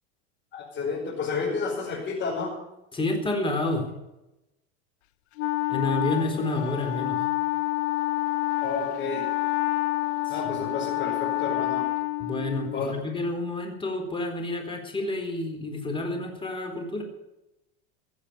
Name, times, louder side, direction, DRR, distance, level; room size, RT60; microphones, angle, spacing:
voice 1, 0.5-2.5 8.6-9.3 10.3-11.9 12.7-12.9, left 4 dB, 35° left, -4 dB, 5.4 m, -31 dB
voice 2, 2.9-3.8 5.7-7.2 10.3-10.4 12.2-17.0, left 2 dB, 15° left, 3 dB, 4.0 m, -29 dB
Wind instrument woodwind instrument, 5.4-12.9, left 18 dB, 85° left, 0.6 m, -28 dB
15.5 x 7.9 x 9.7 m, 0.94 s
supercardioid pair, 115°, 32 cm